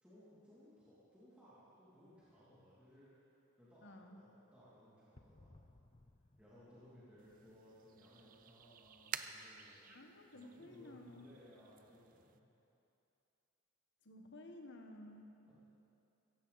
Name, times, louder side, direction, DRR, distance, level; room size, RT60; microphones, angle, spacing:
voice 1, 0.0-3.1 3.6-5.5 6.4-9.8 10.3-12.4 15.4-15.6, equal, 5° right, -12 dB, 2.7 m, -62 dB
voice 2, 3.8-4.2 9.9-11.3 14.0-15.4, left 1 dB, 55° left, 3 dB, 1.3 m, -54 dB
sound 1, 5.1-7.8, left 2 dB, 25° left, 0.6 m, -64 dB
sound 2, 7.2-12.4, right 8 dB, 40° right, 0.4 m, -52 dB
16.0 x 15.5 x 4.1 m, 2.8 s
head